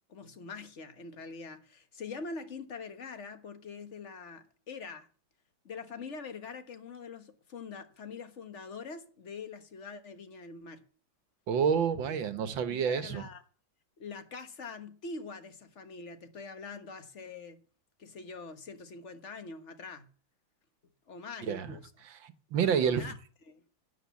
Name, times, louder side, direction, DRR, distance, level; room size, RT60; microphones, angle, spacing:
voice 1, 0.1-5.1 5.6-10.8 12.0-12.1 12.7-13.4 14.0-17.6 18.0-20.1 21.1-21.9 22.6-23.2 23.5-23.6, left 4 dB, 40° left, 1.5 m, -44 dB
voice 2, 11.5-13.3 21.5-21.8 22.2-23.1, right 7 dB, 75° right, 1.9 m, -29 dB
12.0 x 9.4 x 8.4 m
omnidirectional pair, 2.1 m